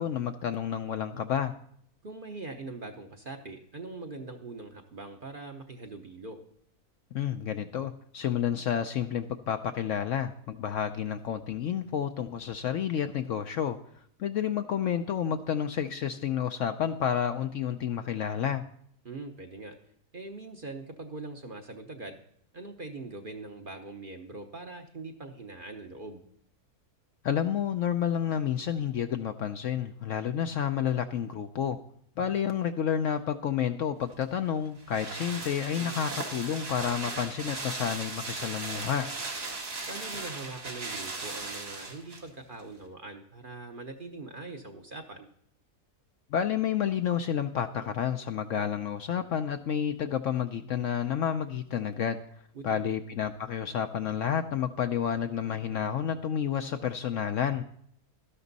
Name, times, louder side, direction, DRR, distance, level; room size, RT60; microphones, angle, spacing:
voice 1, 0.0-1.5 7.1-13.8 14.2-18.6 27.2-31.8 32.2-39.1 46.3-52.2 52.6-57.6, left 8 dB, 65° left, 8 dB, 0.8 m, -30 dB
voice 2, 2.0-6.4 19.0-19.8 20.1-22.2 22.5-26.2 35.8-36.0 39.9-45.3 52.5-52.9, right 3 dB, 40° right, 5 dB, 0.8 m, -42 dB
sound 1, 34.1-42.3 42.6-42.7, right 3 dB, 90° right, 2.6 m, -37 dB
12.5 x 11.0 x 4.0 m, 0.66 s
omnidirectional pair, 1.7 m